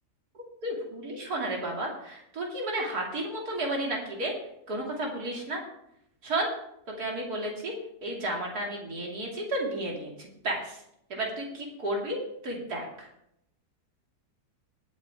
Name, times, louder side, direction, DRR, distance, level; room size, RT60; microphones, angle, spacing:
voice 1, 0.6-4.3 4.7-5.6 6.2-6.5 7.0-7.7 8.0-10.8 11.1-13.1, right 1 dB, 65° right, -1 dB, 3.2 m, -32 dB
20.5 x 7.8 x 3.6 m, 0.78 s
omnidirectional pair, 1.7 m